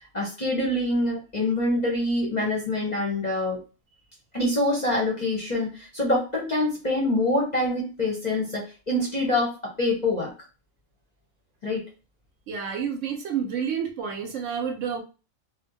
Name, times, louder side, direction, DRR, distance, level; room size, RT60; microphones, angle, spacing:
voice 1, 0.1-3.6 4.3-10.3 11.6-11.8, left 1 dB, 40° left, -2 dB, 0.6 m, -25 dB
voice 2, 12.5-15.0, right 7 dB, 70° right, 4 dB, 0.8 m, -29 dB
2.7 x 2.1 x 2.6 m, 0.32 s
omnidirectional pair, 1.5 m